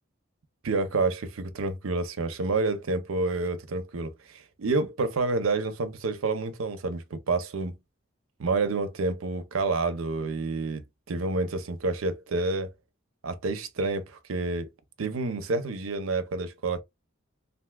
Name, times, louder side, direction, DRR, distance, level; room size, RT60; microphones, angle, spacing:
voice 1, 0.6-7.8 8.4-10.8 11.1-12.7 13.2-14.7 15.0-16.8, right 3 dB, 85° right, 0.6 m, -29 dB
3.5 x 2.5 x 2.2 m
head